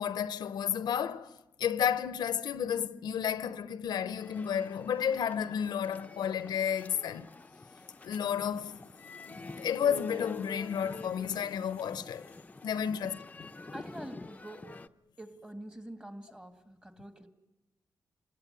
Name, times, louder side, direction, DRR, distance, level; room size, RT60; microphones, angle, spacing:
voice 1, 0.0-7.3 8.0-8.8 9.3-12.3 12.6-13.5, left 8 dB, 85° left, 0.8 m, -32 dB
sound 1, 4.2-14.9, left 3 dB, 20° left, 0.8 m, -47 dB
voice 2, 13.7-14.7 15.2-17.3, right 1 dB, 15° right, 2.5 m, -46 dB
27.0 x 17.0 x 9.5 m
cardioid pair, 95°, 7 cm